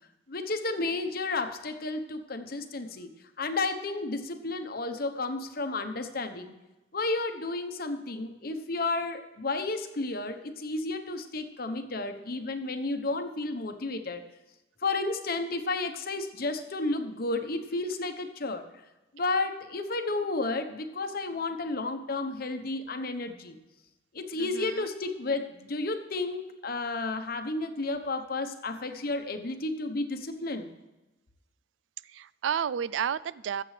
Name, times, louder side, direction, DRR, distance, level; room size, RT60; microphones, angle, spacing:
voice 1, 0.3-3.1 3.4-6.5 6.9-14.2 14.8-18.6 19.1-23.6 24.1-30.7, left 3 dB, 55° left, 7 dB, 1.0 m, -32 dB
voice 2, 24.4-24.9 32.0-33.6, right 8 dB, 85° right, 19 dB, 0.4 m, -32 dB
21.0 x 7.6 x 3.3 m, 1.0 s
head